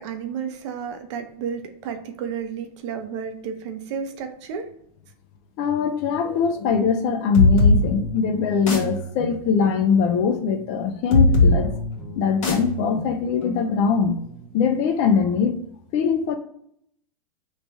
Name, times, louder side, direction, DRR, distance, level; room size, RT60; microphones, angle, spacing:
voice 1, 0.0-4.7, right 7 dB, 50° right, 6 dB, 0.6 m, -32 dB
voice 2, 5.6-11.7 12.2-14.2 14.5-15.6 15.9-16.4, left 6 dB, 35° left, 7 dB, 0.4 m, -22 dB
sound 1, 7.3-14.7, left 2 dB, 60° left, 1.5 m, -23 dB
3.1 x 2.2 x 4.0 m, 0.69 s
hypercardioid pair, 140°, 19 cm